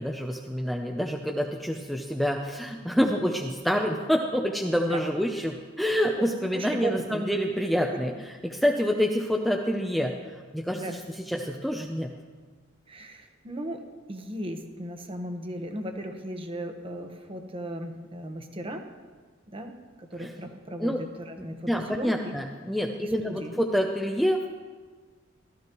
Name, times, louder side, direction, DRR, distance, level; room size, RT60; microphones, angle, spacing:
voice 1, 0.0-8.1 8.4-10.2 10.5-11.0 11.3-12.1 20.2-20.3 20.8-21.0 21.4-24.5, equal, ahead, 1 dB, 0.6 m, -27 dB
voice 2, 6.5-7.2 10.7-11.0 12.9-13.8 14.1-18.8 19.5-19.7 20.0-22.4 23.0-23.5, right 1 dB, 30° right, 5 dB, 1.1 m, -36 dB
15.5 x 13.5 x 3.0 m, 1.4 s
head